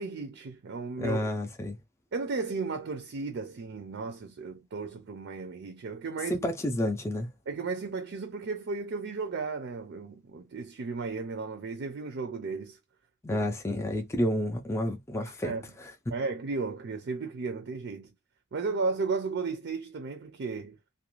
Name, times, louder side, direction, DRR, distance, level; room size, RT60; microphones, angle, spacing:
voice 1, 0.0-1.2 2.1-6.5 7.5-12.8 13.3-13.4 15.4-15.6 16.1-18.1 18.5-20.8, right 4 dB, 55° right, 0.4 m, -34 dB
voice 2, 1.0-1.8 6.2-7.3 13.2-15.9, left 1 dB, 15° left, 0.4 m, -30 dB
2.4 x 2.2 x 3.0 m
head